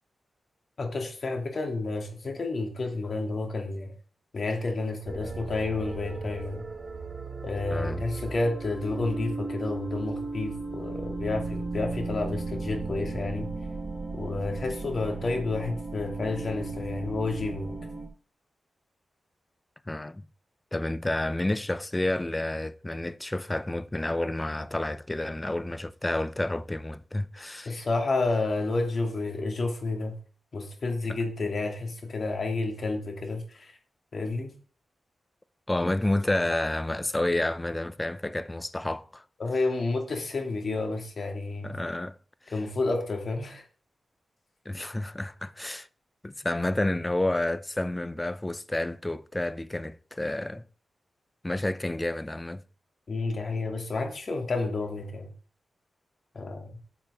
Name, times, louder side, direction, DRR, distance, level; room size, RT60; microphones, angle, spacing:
voice 1, 0.8-3.9 4.3-6.7 7.4-13.5 14.1-17.8 27.7-30.2 30.5-33.7 34.1-34.5 39.4-41.7 42.5-43.6 53.1-55.3 56.3-56.7, left 3 dB, 55° left, 2.7 m, -30 dB
sound 1, 5.0-18.1, right 3 dB, 35° right, 2.5 m, -36 dB
voice 2, 7.7-8.0 19.9-20.2 20.7-27.7 31.1-31.2 35.7-39.2 41.6-42.2 44.7-45.9 46.2-50.6 51.4-52.6, left 1 dB, 20° left, 0.7 m, -30 dB
10.5 x 7.3 x 3.6 m
cardioid pair, 80°, 0 cm